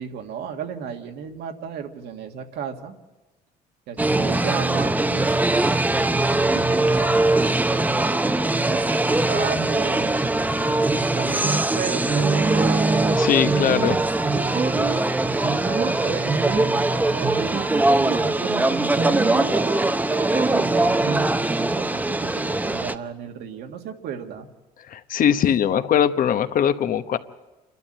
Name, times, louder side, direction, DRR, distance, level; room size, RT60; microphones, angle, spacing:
voice 1, 0.0-2.9 3.9-5.4 6.5-10.3 10.9-12.9 14.5-20.3 20.6-24.5, right 8 dB, 75° right, 5 dB, 1.9 m, -35 dB
sound 1, 4.0-22.9, right 2 dB, 10° right, 0.8 m, -22 dB
sound 2, 11.4-11.7 12.1-15.1 15.4-16.0 16.3-16.7 17.2-18.3 19.0-19.8 20.1-21.3, right 5 dB, 35° right, 1.0 m, -26 dB
voice 2, 13.1-14.0 24.9-27.2, left 9 dB, 55° left, 11 dB, 1.1 m, -21 dB
28.0 x 12.0 x 8.8 m, 1.1 s
cardioid pair, 110°, 17 cm